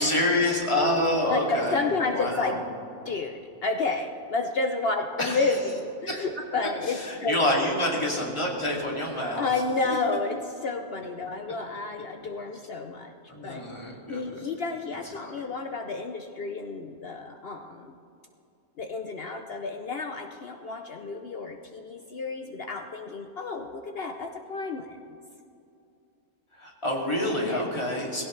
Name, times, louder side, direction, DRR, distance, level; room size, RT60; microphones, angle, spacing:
voice 1, 0.0-1.8 2.1-2.6 5.2-5.6 6.1-6.2 6.9-9.5 13.3-14.5 15.2-15.4 26.5-28.2, left 1 dB, 20° left, -2 dB, 2.5 m, -27 dB
voice 2, 1.3-2.6 3.0-7.6 9.4-13.1 13.4-18.0 18.8-25.1 27.4-27.6, left 3 dB, 55° left, 5 dB, 0.8 m, -31 dB
19.0 x 17.0 x 3.2 m, 2.6 s
omnidirectional pair, 1.4 m